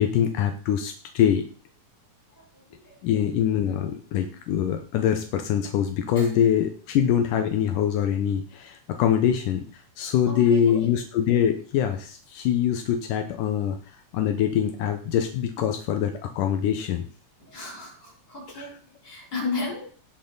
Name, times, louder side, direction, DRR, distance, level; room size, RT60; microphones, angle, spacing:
voice 1, 0.0-1.5 3.0-13.8 14.1-17.1 18.6-18.7, left 9 dB, 80° left, 6 dB, 2.5 m, -24 dB
voice 2, 2.3-3.0 6.1-6.4 10.3-10.9 17.4-19.9, left 3 dB, 30° left, -2 dB, 5.6 m, -35 dB
17.5 x 6.6 x 3.9 m, 0.41 s
omnidirectional pair, 3.7 m